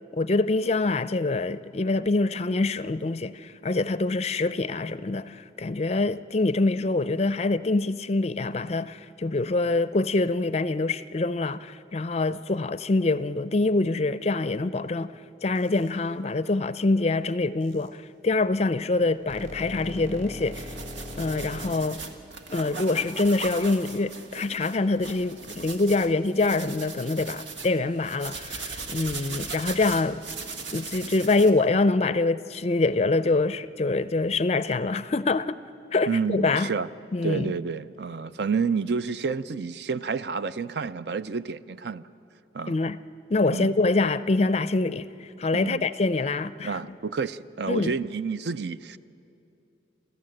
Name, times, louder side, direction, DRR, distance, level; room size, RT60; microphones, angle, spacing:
voice 1, 0.1-15.1 15.4-20.7 21.2-22.0 22.5-30.2 30.7-35.6 35.9-36.7 37.1-37.5 42.7-43.0 43.3-46.8 47.7-47.9, left 3 dB, 35° left, 0.4 m, -25 dB
sound 1, 15.6-15.9 17.6-17.9 18.7-21.7, left 1 dB, 40° right, 2.5 m, -40 dB
sound 2, 20.4-31.5, right 4 dB, 85° right, 1.6 m, -39 dB
voice 2, 36.1-36.9 37.2-42.0 42.5-42.8 43.5-43.7 45.5-45.9 46.6-49.0, right 5 dB, 60° right, 0.5 m, -29 dB
28.5 x 14.5 x 7.8 m
head